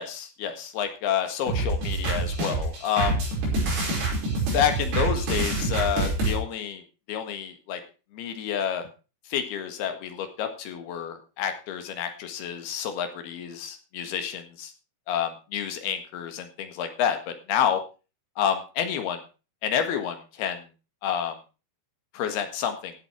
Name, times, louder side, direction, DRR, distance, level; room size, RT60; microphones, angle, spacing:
voice 1, 0.0-3.2 4.5-6.8 7.1-7.8 8.1-8.9 9.3-14.7 15.1-17.8 18.4-19.2 19.6-20.6 21.0-21.4 22.1-22.9, left 8 dB, 70° left, 7 dB, 3.5 m, -29 dB
sound 1, 1.5-6.3, right 2 dB, 70° right, 7.5 m, -26 dB
15.0 x 8.2 x 4.8 m, 0.33 s
omnidirectional pair, 4.9 m